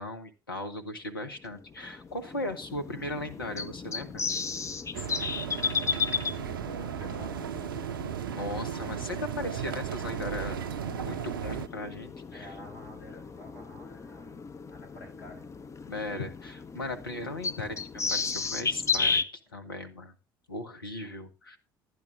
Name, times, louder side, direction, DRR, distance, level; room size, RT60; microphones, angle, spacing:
voice 1, 0.0-4.2 8.3-12.5 15.9-17.8 18.1-19.2 19.5-20.1 20.5-21.6, left 2 dB, 85° left, 6 dB, 1.3 m, -37 dB
sound 1, 1.5-19.2, left 5 dB, 25° left, 0.8 m, -35 dB
sound 2, 4.9-11.7, right 10 dB, 75° right, 0.5 m, -35 dB
voice 2, 6.1-7.9 12.3-15.5, left 1 dB, 70° left, 1 dB, 6.9 m, -50 dB
12.0 x 9.8 x 3.7 m, 0.27 s
figure-of-eight pair, 60°, 11 cm